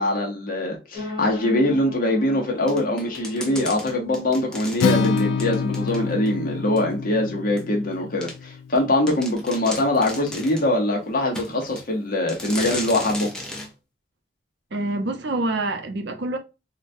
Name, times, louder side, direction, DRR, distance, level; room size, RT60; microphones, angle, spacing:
voice 1, 0.0-13.3, left 1 dB, 45° left, 0.8 m, -23 dB
sound 1, 0.9-6.8, left 2 dB, 25° right, 1.0 m, -38 dB
sound 2, 2.7-6.3 6.8-6.9 7.6-7.7 8.2-8.4 8.8-8.9 9.1-10.7 11.3-11.9 12.3-13.7, left 1 dB, 5° left, 0.6 m, -35 dB
Acoustic guitar, 4.8-9.0, left 6 dB, 70° left, 0.3 m, -27 dB
voice 2, 14.7-16.4, right 2 dB, 60° right, 0.6 m, -26 dB
3.8 x 2.2 x 2.5 m
head